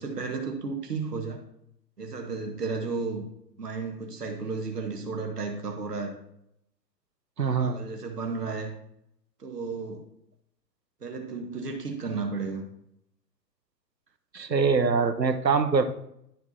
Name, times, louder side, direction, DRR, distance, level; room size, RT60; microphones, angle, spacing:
voice 1, 0.0-1.4 2.0-3.2 3.6-6.1 7.6-8.7 9.4-10.1 11.0-12.6, right 4 dB, 70° right, 3 dB, 1.5 m, -33 dB
voice 2, 7.4-7.8 14.3-15.8, right 5 dB, 90° right, 10 dB, 0.9 m, -23 dB
12.0 x 4.6 x 2.7 m, 0.75 s
figure-of-eight pair, 120°, 49 cm